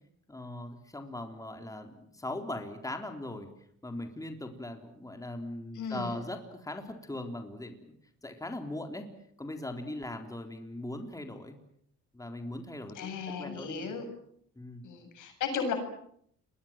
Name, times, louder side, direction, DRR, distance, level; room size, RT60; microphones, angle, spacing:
voice 1, 0.3-3.5 3.8-7.9 8.2-9.1 9.4-11.6 12.1-13.9 14.6-14.9, left 1 dB, 10° left, 5 dB, 3.9 m, -40 dB
voice 2, 5.7-6.2 12.9-14.1 14.8-15.7, left 5 dB, 80° left, 6 dB, 7.7 m, -35 dB
30.0 x 22.5 x 7.6 m, 0.68 s
cardioid pair, 90°, 30 cm